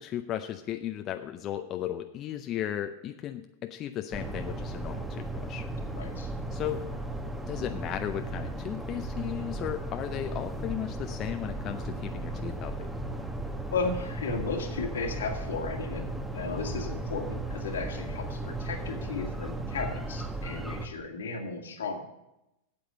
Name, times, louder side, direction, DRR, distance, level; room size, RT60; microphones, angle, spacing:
voice 1, 0.0-5.7 6.5-6.8 7.5-12.8, left 11 dB, 40° left, 7 dB, 0.6 m, -35 dB
sound 1, 4.1-20.9, right 2 dB, 5° right, 1.1 m, -36 dB
voice 2, 6.0-6.3 13.7-16.0 16.3-22.0, left 4 dB, 80° left, 3 dB, 1.8 m, -34 dB
8.7 x 7.9 x 6.5 m, 0.89 s
hypercardioid pair, 100°, 0 cm